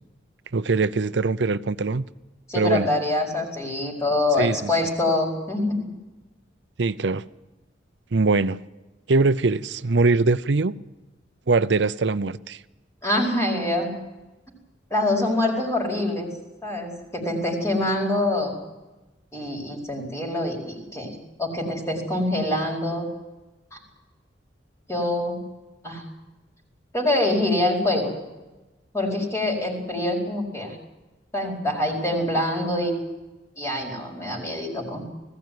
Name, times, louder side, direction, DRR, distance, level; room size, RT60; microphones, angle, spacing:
voice 1, 0.5-2.1 2.5-2.9 4.4-4.7 6.8-7.2 8.1-8.6 9.1-10.7 11.5-12.6, right 3 dB, 65° right, 0.6 m, -22 dB
voice 2, 2.5-5.9 13.0-13.9 14.9-16.3 16.6-18.5 19.3-23.1 23.7-23.8 24.9-25.4 25.8-26.0 26.9-28.1 28.9-30.8 31.3-32.9 33.6-35.0, left 1 dB, 15° left, 4.8 m, -25 dB
20.0 x 16.0 x 9.4 m
head